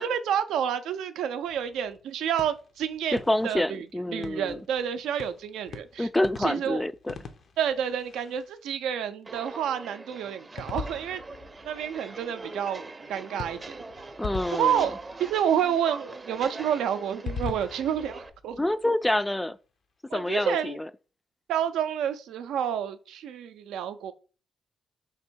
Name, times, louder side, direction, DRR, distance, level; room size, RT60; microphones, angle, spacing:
voice 1, 0.0-3.2 3.4-3.9 4.1-6.1 6.4-6.8 7.6-11.2 11.6-12.8 13.1-13.8 14.5-18.6 20.1-20.8 21.5-24.1, right 9 dB, 85° right, 0.4 m, -29 dB
sound 1, 1.4-8.9 10.6-12.2 13.4-15.8 17.1-19.1, left 5 dB, 65° left, 0.6 m, -42 dB
voice 2, 3.1-4.6 6.0-7.2 14.2-14.9 18.6-19.6 20.1-20.9, left 1 dB, 15° left, 0.3 m, -27 dB
Walk footsteps, 9.2-18.3, right 2 dB, 35° right, 0.6 m, -43 dB
3.5 x 2.6 x 4.4 m
supercardioid pair, 55°, 0 cm